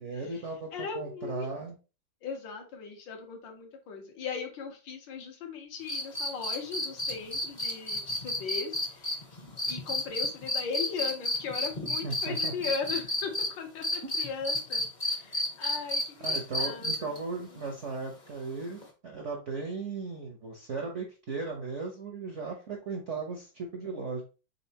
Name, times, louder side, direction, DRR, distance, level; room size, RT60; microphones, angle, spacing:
voice 1, 0.0-0.7 0.9-1.7 12.0-12.7 16.2-24.2, right 4 dB, 55° right, 1 dB, 0.8 m, -36 dB
voice 2, 0.7-1.5 2.2-9.1 9.7-17.1, left 5 dB, 70° left, 4 dB, 1.6 m, -38 dB
sound 1, 5.9-13.5 13.8-17.2 18.8-18.9, left 2 dB, 35° left, 0.8 m, -31 dB
4.2 x 3.8 x 2.8 m, 0.31 s
omnidirectional pair, 2.2 m